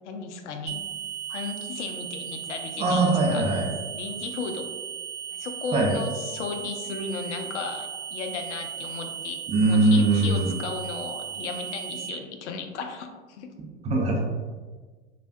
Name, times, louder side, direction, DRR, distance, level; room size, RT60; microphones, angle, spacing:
voice 1, 0.0-0.8 1.3-3.4 3.9-4.7 5.3-9.4 9.7-13.5, left 5 dB, 70° left, 5 dB, 0.5 m, -35 dB
sound 1, 0.7-12.1, right 9 dB, 80° right, 0.6 m, -36 dB
voice 2, 2.8-3.7 5.7-5.9 9.5-10.5 13.8-14.2, right 2 dB, 20° right, 0 dB, 0.4 m, -21 dB
3.2 x 2.2 x 2.6 m, 1.4 s
hypercardioid pair, 85°, 37 cm